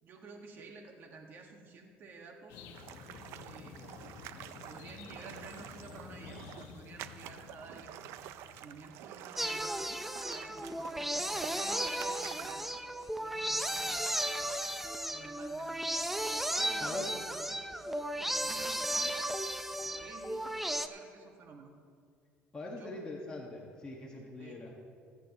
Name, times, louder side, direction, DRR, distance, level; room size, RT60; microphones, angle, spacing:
voice 1, 0.0-2.6 3.4-3.9 4.6-8.0 8.4-10.0 10.3-12.7 13.2-14.5 15.1-15.8 16.5-19.3 19.7-21.7 22.7-22.9 24.4-24.6, right 4 dB, 50° right, 2 dB, 1.8 m, -52 dB
sound 1, 2.5-9.4, left 5 dB, 85° left, 1.1 m, -51 dB
sound 2, 2.7-12.8, right 12 dB, 75° right, 0.5 m, -49 dB
sound 3, 9.4-20.9, right 1 dB, 5° right, 0.6 m, -35 dB
voice 2, 22.5-24.7, left 2 dB, 20° left, -3 dB, 1.7 m, -43 dB
23.0 x 8.3 x 3.1 m, 2.2 s
cardioid pair, 110°, 5 cm